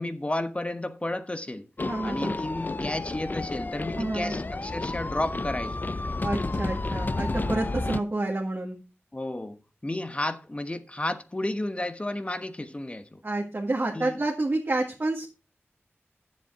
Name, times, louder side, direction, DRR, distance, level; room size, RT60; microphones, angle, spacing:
voice 1, 0.0-1.7 2.0-5.9 9.1-13.2 13.9-14.2, left 1 dB, 25° left, 1.0 m, -32 dB
sound 1, 1.8-8.0, left 2 dB, 40° left, 0.5 m, -31 dB
voice 2, 1.9-2.4 4.0-4.3 6.2-8.8 13.2-15.3, right 2 dB, 50° right, 1.8 m, -29 dB
10.0 x 7.5 x 4.6 m
wide cardioid pair, 75°, 5 cm